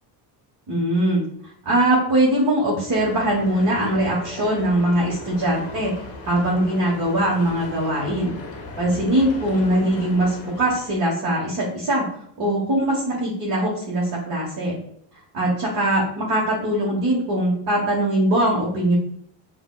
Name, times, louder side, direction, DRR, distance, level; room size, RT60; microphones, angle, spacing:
voice 1, 0.7-5.9 6.2-8.3 8.8-12.1 12.4-14.8 15.3-19.0, right 1 dB, 50° right, -4 dB, 1.4 m, -21 dB
sound 1, 2.9-11.0, left 3 dB, 35° left, 0.9 m, -37 dB
6.5 x 2.7 x 2.4 m, 0.67 s
cardioid pair, 160°, 42 cm